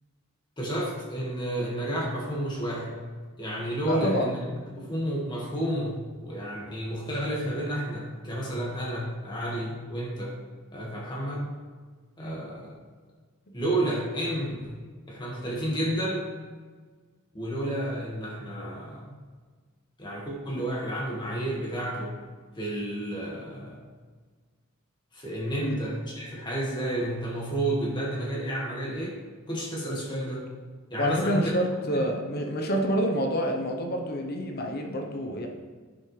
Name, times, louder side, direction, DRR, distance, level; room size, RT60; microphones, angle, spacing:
voice 1, 0.6-3.0 3.4-4.4 4.8-10.3 10.7-11.5 12.2-12.7 13.5-14.8 15.1-16.3 17.3-19.1 20.0-22.2 22.6-23.8 25.1-29.1 29.5-30.5 30.9-31.5 31.9-32.1, right 1 dB, 20° left, -4 dB, 1.7 m, -31 dB
voice 2, 3.8-4.3 12.2-12.4 25.6-25.8 31.0-35.5, equal, 45° left, 2 dB, 0.9 m, -28 dB
10.5 x 5.7 x 3.3 m, 1.5 s
head